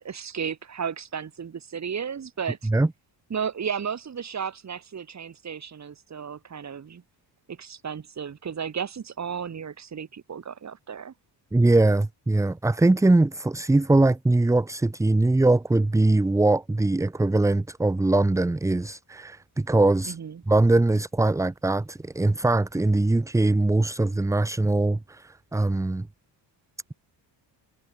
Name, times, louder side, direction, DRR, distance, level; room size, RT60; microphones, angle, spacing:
voice 1, 0.0-2.7 3.3-7.0 7.5-11.1 20.0-20.4, right 7 dB, 35° right, 6.1 m, -34 dB
voice 2, 11.5-20.2 20.5-26.1, right 2 dB, 5° right, 0.8 m, -22 dB
cardioid pair, 135°, 44 cm